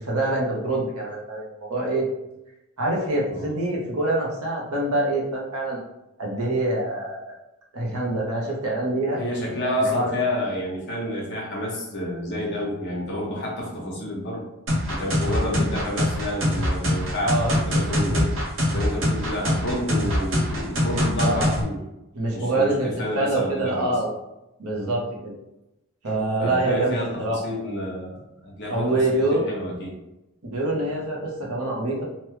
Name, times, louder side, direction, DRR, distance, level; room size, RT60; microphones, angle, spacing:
voice 1, 0.0-2.1 2.8-5.8 6.2-7.2 7.7-9.2 9.9-10.1 17.2-17.5 20.9-21.5 22.1-24.1 24.6-25.3 26.0-27.4 28.7-29.4 30.4-32.0, right 2 dB, 80° right, -2 dB, 0.9 m, -25 dB
voice 2, 9.2-14.4 14.9-18.3 18.7-21.8 22.3-24.0 24.7-24.9 26.1-29.9, left 1 dB, 50° left, -3 dB, 1.0 m, -29 dB
sound 1, 14.7-21.6, equal, 60° right, 0.8 m, -23 dB
3.0 x 2.2 x 3.1 m, 0.91 s
head